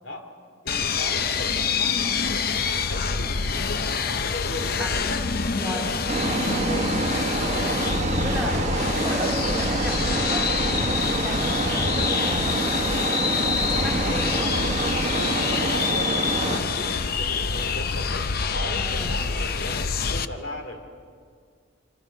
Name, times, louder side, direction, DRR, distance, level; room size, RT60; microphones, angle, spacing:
voice 1, 0.6-5.3 6.6-6.9 7.4-7.8 8.4-9.1 15.1-20.8, left 1 dB, 70° left, 4 dB, 3.1 m, -37 dB
sound 1, 0.7-20.3, left 5 dB, 50° left, 0.7 m, -26 dB
voice 2, 5.6-5.9 7.3-7.7 8.2-8.6 9.0-13.2 13.4-14.6 16.4-17.0 18.7-19.1, equal, 5° right, -1 dB, 3.4 m, -36 dB
sound 2, 6.1-16.6, right 2 dB, 35° right, 1.0 m, -27 dB
26.5 x 26.0 x 5.4 m, 2.1 s
head